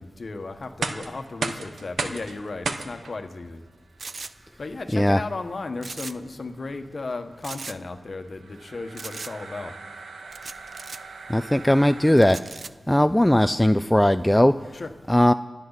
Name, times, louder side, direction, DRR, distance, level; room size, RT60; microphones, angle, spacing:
voice 1, 0.0-3.6 4.6-9.7 14.7-14.9, left 3 dB, 55° left, 6 dB, 1.4 m, -35 dB
sound 1, 0.6-12.5, right 4 dB, 80° right, 1.0 m, -37 dB
sound 2, 4.0-4.3 5.8-6.3 6.6-6.7 7.4-7.8 9.0-9.3 10.3-11.0 12.2-12.7, right 4 dB, 60° right, 0.5 m, -38 dB
voice 2, 11.3-12.4 12.9-14.5 15.1-15.3, left 1 dB, 10° left, 11 dB, 0.4 m, -18 dB
27.0 x 9.5 x 4.1 m, 1.4 s
cardioid pair, 45°, 0 cm